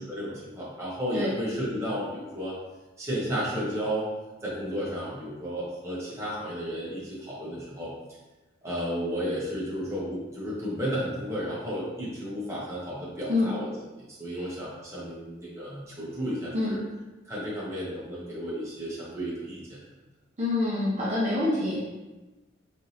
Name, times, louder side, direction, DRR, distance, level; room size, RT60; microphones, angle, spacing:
voice 1, 0.0-2.6 3.0-4.1 4.4-7.9 8.6-13.7 14.2-16.8 17.3-19.8, equal, 15° right, -7 dB, 1.1 m, -33 dB
voice 2, 20.4-21.8, left 2 dB, 35° right, -8 dB, 0.8 m, -26 dB
4.2 x 3.5 x 2.8 m, 1.1 s
head